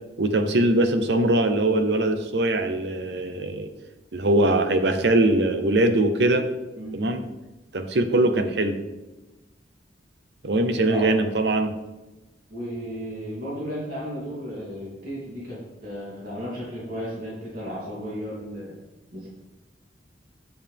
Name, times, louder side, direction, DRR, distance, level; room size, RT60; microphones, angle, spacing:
voice 1, 0.2-3.7 4.1-6.4 6.9-7.2 7.7-8.8 10.4-11.7, right 1 dB, 70° right, 8 dB, 0.8 m, -21 dB
voice 2, 6.8-7.3 10.7-11.2 12.5-18.7 19.1-19.3, equal, 50° right, -6 dB, 2.9 m, -34 dB
7.6 x 7.0 x 3.5 m, 1.1 s
head